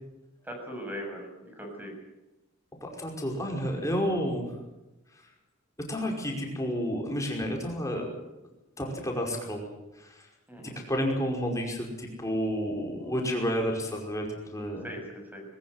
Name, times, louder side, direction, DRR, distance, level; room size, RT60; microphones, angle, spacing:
voice 1, 0.4-1.3 1.5-1.9 10.5-10.8 14.8-15.4, equal, 10° right, 2 dB, 6.7 m, -39 dB
voice 2, 2.8-4.5 5.9-8.1 8.8-9.7 10.0-10.3 10.6-14.9, equal, 15° left, 1 dB, 5.3 m, -31 dB
21.5 x 20.0 x 8.0 m, 1.0 s
head